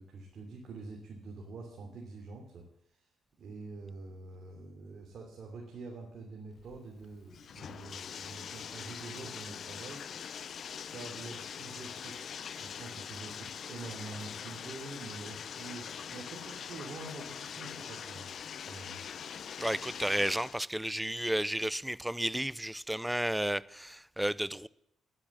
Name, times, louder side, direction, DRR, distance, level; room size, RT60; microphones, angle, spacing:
voice 1, 0.0-3.1 3.4-10.0 10.9-18.3 18.7-19.0, right 3 dB, 55° right, 3.1 m, -46 dB
Bathtub (filling or washing), 6.6-20.6, left 7 dB, 55° left, 0.6 m, -43 dB
voice 2, 19.6-24.7, right 1 dB, 5° right, 0.5 m, -32 dB
11.0 x 9.8 x 7.5 m
cardioid pair, 90°, 0 cm